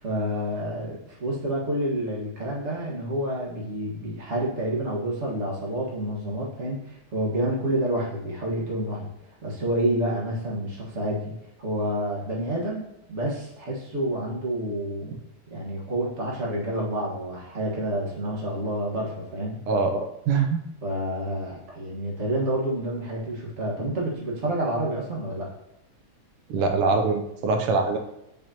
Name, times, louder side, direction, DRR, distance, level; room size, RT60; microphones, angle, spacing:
voice 1, 0.0-9.1 9.4-15.2 15.5-19.6 20.8-25.5, right 1 dB, 35° right, -4 dB, 1.8 m, -29 dB
voice 2, 19.7-20.6 26.5-28.0, right 4 dB, 90° right, 5 dB, 1.6 m, -23 dB
8.6 x 5.1 x 2.9 m, 0.85 s
omnidirectional pair, 2.3 m